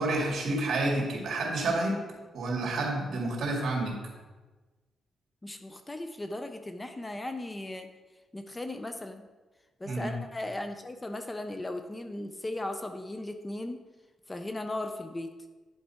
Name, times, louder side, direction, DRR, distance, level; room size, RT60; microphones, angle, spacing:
voice 1, 0.0-2.0 2.3-4.0 9.8-10.1, right 2 dB, 60° right, 0 dB, 2.1 m, -29 dB
voice 2, 5.4-7.9 8.3-9.2 9.8-13.8 14.3-15.3, left 1 dB, 15° left, 7 dB, 0.4 m, -37 dB
10.0 x 4.6 x 4.3 m, 1.3 s
cardioid pair, 150°, 0 cm